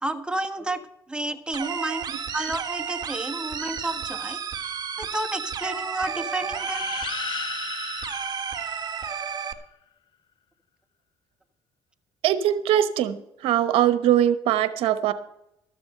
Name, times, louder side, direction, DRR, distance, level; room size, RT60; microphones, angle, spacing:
voice 1, 0.0-2.0 2.3-4.4 5.0-6.9, right 2 dB, 10° right, 7 dB, 1.4 m, -31 dB
sound 1, 1.5-9.5, right 7 dB, 45° right, 1.4 m, -32 dB
sound 2, 6.5-9.4, left 9 dB, 55° left, 0.5 m, -36 dB
voice 2, 12.2-13.2 13.4-15.1, right 11 dB, 80° right, 12 dB, 1.0 m, -21 dB
13.0 x 6.9 x 7.6 m, 0.81 s
supercardioid pair, 80°, 9 cm